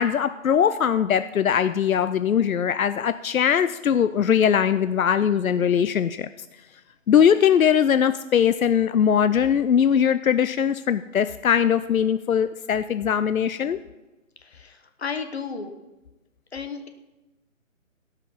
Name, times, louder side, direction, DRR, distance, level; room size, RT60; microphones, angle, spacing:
voice 1, 0.0-6.3 7.1-13.8, left 8 dB, 90° left, 12 dB, 0.6 m, -21 dB
voice 2, 14.4-15.7 16.5-16.9, left 5 dB, 50° left, 7 dB, 1.3 m, -33 dB
17.0 x 5.7 x 5.3 m, 1.1 s
figure-of-eight pair, 165°, 40 cm